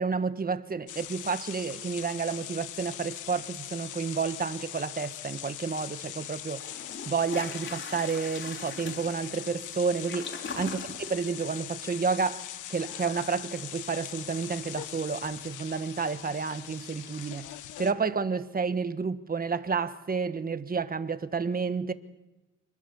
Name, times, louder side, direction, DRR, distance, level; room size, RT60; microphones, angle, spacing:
voice 1, 0.0-6.6 7.1-12.4 12.7-17.5 17.8-21.9, right 5 dB, 30° right, 1.4 m, -30 dB
sound 1, 0.9-17.9, left 12 dB, 85° left, 1.4 m, -41 dB
Toilet flush, 6.0-6.1 6.6-17.4, left 4 dB, 40° left, 3.7 m, -45 dB
27.5 x 20.0 x 7.1 m
cardioid pair, 90°, 30 cm